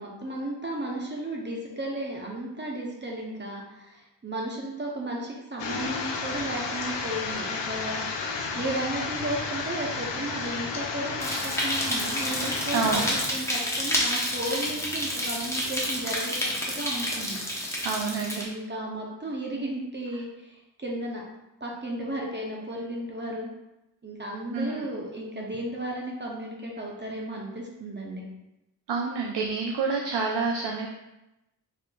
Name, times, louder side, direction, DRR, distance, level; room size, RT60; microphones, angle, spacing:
voice 1, 0.0-17.4 18.4-21.2 21.6-23.5 24.0-28.3, right 1 dB, 25° right, -2 dB, 0.7 m, -34 dB
sound 1, 5.6-13.3, left 4 dB, 80° left, 0.6 m, -32 dB
sound 2, 11.2-18.4, equal, 5° left, 0.9 m, -29 dB
voice 2, 12.7-13.1 17.8-18.5 24.5-24.9 28.9-30.9, right 4 dB, 70° right, 0 dB, 0.5 m, -28 dB
4.1 x 2.9 x 2.3 m, 0.94 s
cardioid pair, 55°, 43 cm